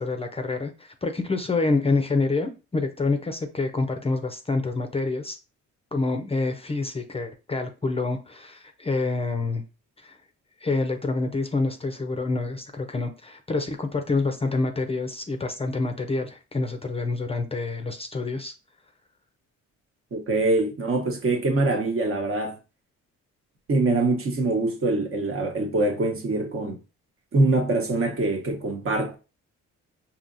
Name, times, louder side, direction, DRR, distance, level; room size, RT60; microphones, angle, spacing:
voice 1, 0.0-5.4 5.9-9.6 10.0-10.2 10.6-18.5, left 3 dB, 20° left, 0.5 m, -27 dB
voice 2, 20.1-22.6 23.7-26.8 27.3-29.2, right 2 dB, 45° right, 1.1 m, -24 dB
5.3 x 2.8 x 2.6 m
cardioid pair, 90°, 30 cm